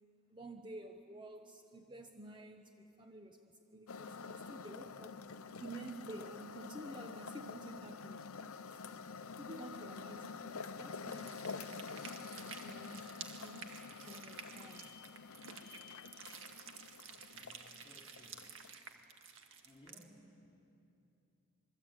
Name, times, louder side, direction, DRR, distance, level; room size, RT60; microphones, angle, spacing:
voice 1, 0.3-8.5 9.4-11.8 12.6-14.9 17.1-17.5, right 1 dB, 20° right, 5 dB, 0.9 m, -51 dB
sound 1, 3.9-18.7, left 5 dB, 75° left, 0.8 m, -48 dB
sound 2, 11.0-20.0, right 6 dB, 60° right, 2.0 m, -52 dB
sound 3, 13.7-16.4, left 12 dB, 50° left, 1.2 m, -62 dB
voice 2, 17.3-18.9 19.6-20.7, equal, 20° left, 0 dB, 3.4 m, -62 dB
27.5 x 22.0 x 9.0 m, 2.8 s
head